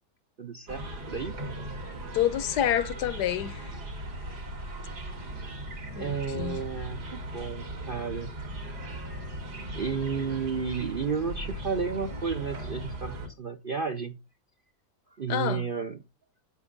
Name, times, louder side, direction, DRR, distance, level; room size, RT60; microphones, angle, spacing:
voice 1, 0.4-1.3 6.0-8.3 9.7-14.2 15.2-16.0, right 6 dB, 50° right, 0.6 m, -32 dB
sound 1, 0.7-13.3, right 1 dB, 70° right, 3.0 m, -38 dB
voice 2, 2.1-3.7 5.9-6.6 15.3-15.7, left 11 dB, 75° left, 1.3 m, -28 dB
8.8 x 8.0 x 3.9 m
omnidirectional pair, 1.8 m